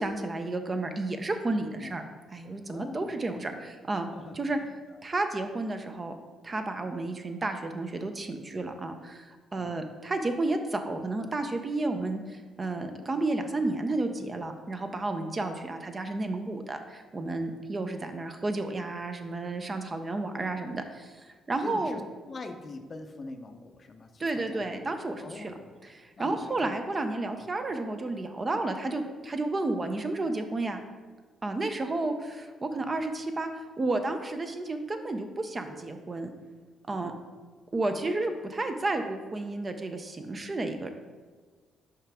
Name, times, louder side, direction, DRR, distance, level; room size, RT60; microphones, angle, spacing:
voice 1, 0.0-2.0 2.3-4.1 4.4-4.6 5.0-6.2 6.4-22.0 24.2-25.5 25.8-30.8 31.4-33.5 33.8-36.3 36.9-37.1 37.7-40.9, right 2 dB, 30° right, 7 dB, 0.6 m, -32 dB
voice 2, 2.7-3.1 4.1-5.0 9.6-9.8 21.6-22.0 22.3-24.7 25.2-25.7 26.2-26.7 27.4-27.5 37.0-37.2, left 3 dB, 40° left, 6 dB, 0.5 m, -43 dB
5.7 x 4.9 x 3.5 m, 1.4 s
cardioid pair, 90°, 0 cm